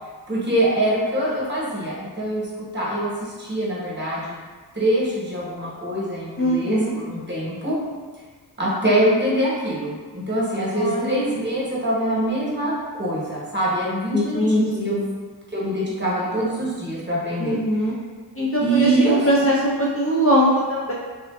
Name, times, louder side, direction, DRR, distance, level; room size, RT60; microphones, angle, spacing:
voice 1, 0.3-2.5 2.7-4.4 4.7-7.8 8.6-15.0 15.5-17.6 18.6-19.5, right 1 dB, 25° right, -7 dB, 1.0 m, -24 dB
voice 2, 6.4-6.9 10.7-11.4 14.1-15.0 17.4-17.9 18.4-20.9, equal, 30° left, -7 dB, 0.5 m, -21 dB
3.5 x 2.5 x 2.2 m, 1.4 s
wide cardioid pair, 80°, 42 cm